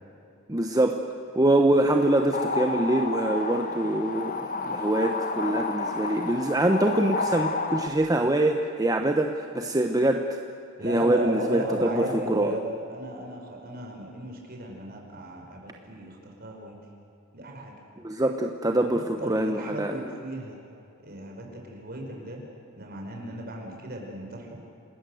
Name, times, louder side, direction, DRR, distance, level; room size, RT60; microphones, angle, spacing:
voice 1, 0.5-1.0 1.3-10.4 10.8-12.5 18.0-20.0, right 1 dB, 20° right, 4 dB, 1.0 m, -24 dB
sound 1, 2.0-7.9, left 3 dB, 45° left, 1.6 m, -31 dB
voice 2, 10.8-16.8 17.3-17.7 18.8-20.6 21.0-22.4 22.8-24.6, right 1 dB, 50° right, 1 dB, 5.2 m, -35 dB
28.0 x 20.0 x 7.9 m, 2.7 s
head